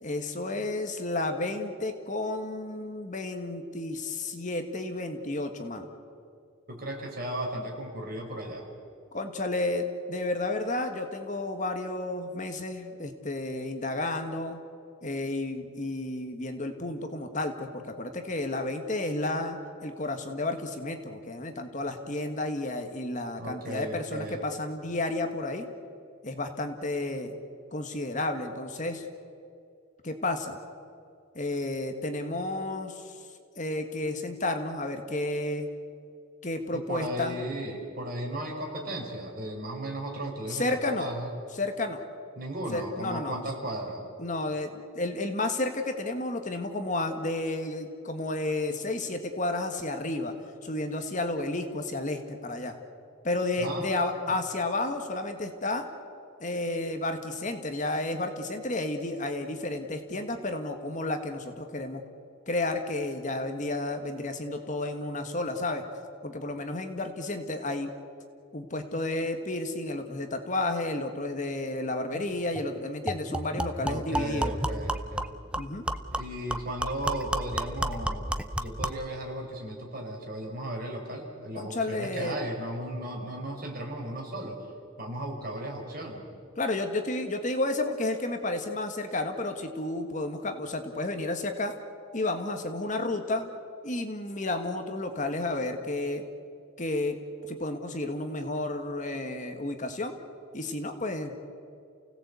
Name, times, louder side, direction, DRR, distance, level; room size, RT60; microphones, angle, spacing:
voice 1, 0.0-5.9 9.1-14.6 15.0-25.7 26.2-27.4 27.7-29.0 30.0-30.6 31.3-35.7 36.4-37.4 40.5-41.1 41.5-42.0 42.7-43.4 44.2-50.3 50.6-52.8 53.2-55.8 56.4-62.0 62.5-65.8 66.2-67.9 68.5-74.8 75.6-75.8 81.5-82.4 86.6-91.7 92.1-93.5 93.8-96.2 96.8-97.2 97.5-100.2 100.5-101.4, left 2 dB, 35° left, 6 dB, 1.5 m, -32 dB
voice 2, 6.7-8.7 23.4-24.4 36.7-41.3 42.4-44.1 53.6-54.3 73.8-75.3 76.1-84.7 85.0-86.3, right 1 dB, 45° right, 0 dB, 4.8 m, -36 dB
sound 1, 72.1-72.2 72.5-72.7 73.1-79.1, right 1 dB, 5° right, 0.6 m, -32 dB
28.5 x 17.0 x 8.3 m, 2.5 s
head